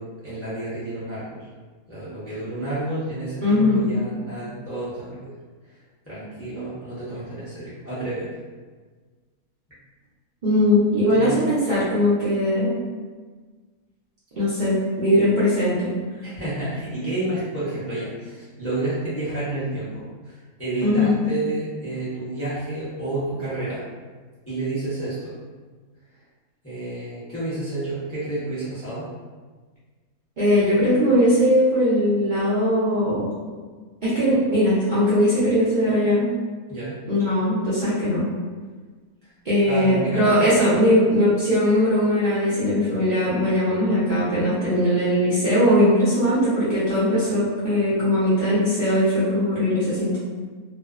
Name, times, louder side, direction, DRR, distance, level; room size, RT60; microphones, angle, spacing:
voice 1, 0.0-1.4 1.9-5.3 6.1-8.4 11.1-11.4 16.2-23.8 24.5-25.3 26.6-29.1 36.7-37.0 39.7-40.5, right 2 dB, 20° left, -12 dB, 0.4 m, -30 dB
voice 2, 3.4-3.8 10.4-12.7 14.3-15.9 20.8-21.2 30.4-33.3 34.0-36.3 37.1-38.2 39.4-50.2, left 1 dB, 50° right, -13 dB, 0.5 m, -20 dB
2.4 x 2.1 x 2.3 m, 1.4 s
omnidirectional pair, 1.5 m